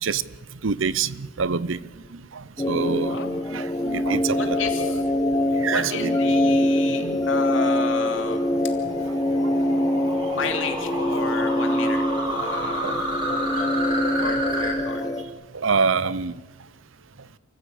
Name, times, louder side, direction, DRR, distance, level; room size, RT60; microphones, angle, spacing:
voice 1, 0.6-1.8 2.1-5.0 5.6-7.2 9.1-9.2 12.8-13.0 15.5-16.4, right 5 dB, 70° right, 18 dB, 0.7 m, -27 dB
sound 1, 2.6-15.2, left 1 dB, 20° left, 1.4 m, -24 dB
voice 2, 4.3-5.0 5.7-8.4 10.3-13.1 14.2-15.0, left 4 dB, 65° left, 5 dB, 2.9 m, -32 dB
sound 2, 6.7-14.7, right 1 dB, 25° right, 6.0 m, -31 dB
28.0 x 15.5 x 8.6 m, 1.2 s
head